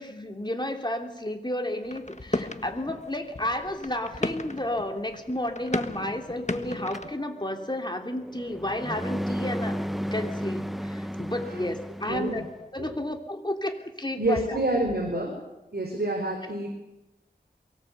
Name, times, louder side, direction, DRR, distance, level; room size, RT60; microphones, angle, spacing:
voice 1, 0.0-9.8 10.1-14.6, left 1 dB, 25° left, 3 dB, 3.1 m, -32 dB
sound 1, 1.8-7.1, left 2 dB, 40° left, 1.4 m, -35 dB
sound 2, 6.9-12.5, equal, ahead, 1.1 m, -34 dB
voice 2, 12.1-12.5 12.8-13.0 14.2-15.4 15.7-16.7, right 1 dB, 65° right, 2 dB, 4.6 m, -28 dB
23.0 x 18.0 x 8.3 m, 0.99 s
wide cardioid pair, 50°, 18 cm